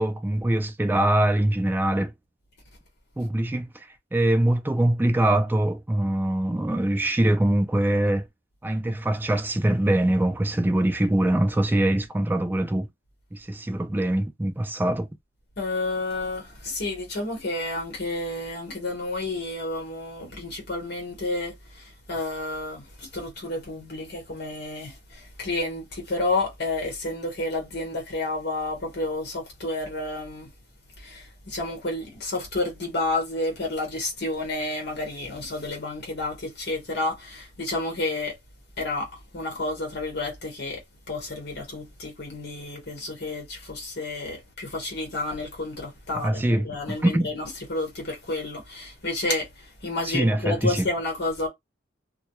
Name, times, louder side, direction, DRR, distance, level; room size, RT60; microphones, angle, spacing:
voice 1, 0.0-2.1 3.2-3.7 4.1-8.3 8.6-12.9 13.3-15.1 46.2-46.7 47.0-47.3 50.1-50.9, right 1 dB, 10° right, 0.3 m, -23 dB
voice 2, 15.6-30.5 31.0-38.4 38.8-40.8 41.1-51.5, left 2 dB, 55° left, 1.0 m, -30 dB
2.2 x 2.2 x 2.9 m
head